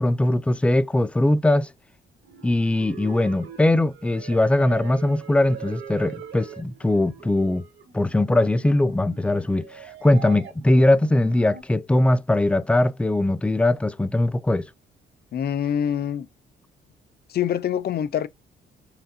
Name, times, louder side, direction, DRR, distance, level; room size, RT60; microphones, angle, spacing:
voice 1, 0.0-1.7 2.4-7.7 7.9-14.7, left 1 dB, 5° left, 0.3 m, -21 dB
sound 1, 2.2-11.6, right 8 dB, 80° right, 1.9 m, -42 dB
voice 2, 15.3-16.3 17.3-18.3, left 9 dB, 55° left, 0.5 m, -25 dB
5.7 x 2.6 x 2.6 m
cardioid pair, 90°, 20 cm